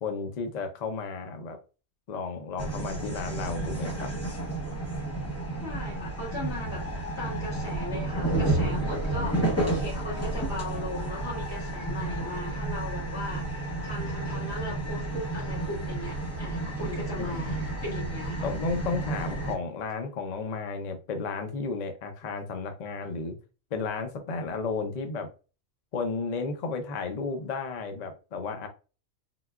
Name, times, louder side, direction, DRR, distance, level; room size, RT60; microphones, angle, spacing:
voice 1, 0.0-1.6 2.1-4.1 8.6-8.9 17.2-17.6 18.4-23.4 23.7-25.3 25.9-28.7, left 4 dB, 70° left, 6 dB, 0.4 m, -33 dB
sound 1, 2.6-19.5, right 2 dB, 15° left, 0.5 m, -31 dB
voice 2, 5.6-6.8 7.2-18.5, left 2 dB, 50° left, -5 dB, 2.1 m, -38 dB
3.8 x 2.2 x 2.3 m, 0.33 s
omnidirectional pair, 1.4 m